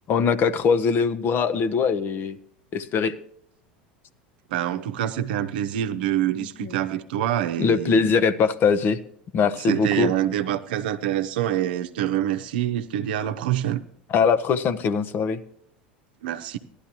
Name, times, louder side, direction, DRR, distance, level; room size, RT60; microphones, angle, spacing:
voice 1, 0.1-2.4 2.7-3.1 6.4-6.8 7.6-9.0 9.3-10.1 14.1-15.4, left 5 dB, 40° left, 0.8 m, -22 dB
voice 2, 4.5-8.1 9.7-13.8 16.2-16.6, right 11 dB, 70° right, 0.8 m, -26 dB
16.0 x 11.5 x 2.9 m
hypercardioid pair, 85°, 5 cm